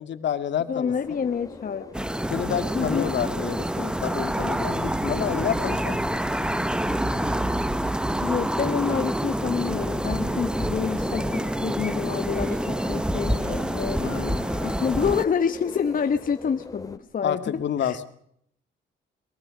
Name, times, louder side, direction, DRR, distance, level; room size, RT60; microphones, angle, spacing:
voice 1, 0.0-0.9 2.3-6.0 14.0-14.4 17.2-18.0, left 9 dB, 65° left, 10 dB, 2.2 m, -29 dB
voice 2, 0.7-2.1 2.7-3.1 8.2-14.0 14.6-18.0, left 7 dB, 45° left, 8 dB, 1.2 m, -28 dB
sound 1, 0.9-17.0, left 3 dB, 15° left, 2.4 m, -42 dB
sound 2, 1.9-15.2, right 1 dB, 5° right, 1.0 m, -27 dB
sound 3, 4.2-14.9, right 2 dB, 45° right, 4.1 m, -40 dB
22.5 x 21.5 x 6.5 m, 0.67 s
cardioid pair, 90°, 20 cm